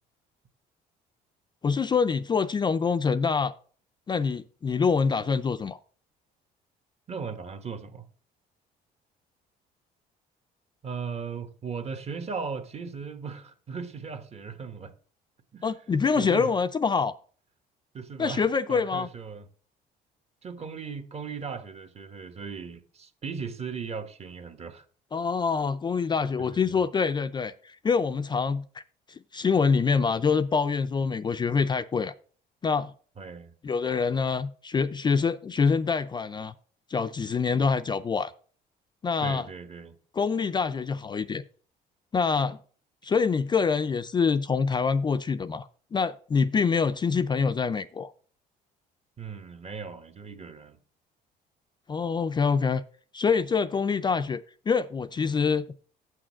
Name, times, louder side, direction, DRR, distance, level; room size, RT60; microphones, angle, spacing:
voice 1, 1.6-3.5 4.1-5.8 15.6-17.1 18.2-19.1 25.1-28.8 29.1-32.1 32.6-32.9 33.6-36.5 36.9-38.3 39.0-39.5 40.1-41.4 42.1-42.6 43.0-48.1 51.9-52.8 53.1-54.4 54.7-55.6, left 5 dB, 25° left, 0.4 m, -25 dB
voice 2, 7.1-8.0 10.8-14.9 15.5-15.7 16.1-16.5 17.9-19.5 20.4-24.8 26.4-26.8 33.2-33.5 39.2-40.0 49.2-50.8, right 5 dB, 40° right, 1.2 m, -37 dB
7.0 x 6.3 x 6.1 m
cardioid pair, 110°, 17 cm